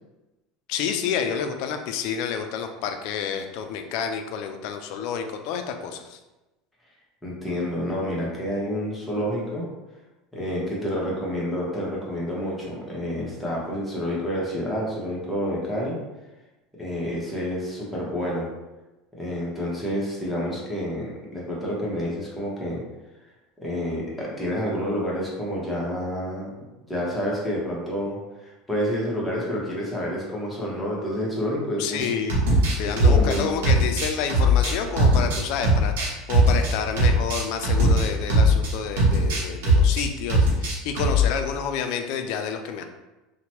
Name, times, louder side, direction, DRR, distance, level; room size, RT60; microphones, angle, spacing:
voice 1, 0.7-6.2 31.8-32.4 32.8-42.8, left 7 dB, 65° left, 6 dB, 0.3 m, -29 dB
voice 2, 7.2-9.7 10.3-16.0 16.8-18.5 19.2-22.8 23.6-26.5 26.9-32.3 32.8-33.5, equal, 5° left, -6 dB, 0.9 m, -29 dB
sound 1, 32.0-38.7 39.0-40.0 40.3-41.3, equal, 85° right, 0.8 m, -19 dB
2.8 x 2.1 x 2.9 m, 1.1 s
supercardioid pair, 115°, 0 cm